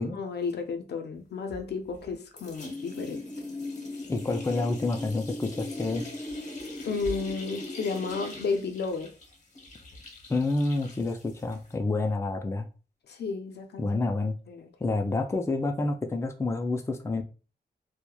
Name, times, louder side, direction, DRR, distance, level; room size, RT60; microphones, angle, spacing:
voice 1, 0.0-3.2 6.9-9.1 13.1-13.9 14.5-14.7, left 4 dB, 80° left, 0.5 m, -32 dB
sound 1, 1.5-2.1 2.4-11.7, left 2 dB, 45° left, 0.9 m, -40 dB
voice 2, 4.1-6.0 10.3-12.7 13.8-14.3 14.8-17.2, left 2 dB, 15° left, 0.4 m, -28 dB
2.8 x 2.1 x 2.2 m
cardioid pair, 75°, 17 cm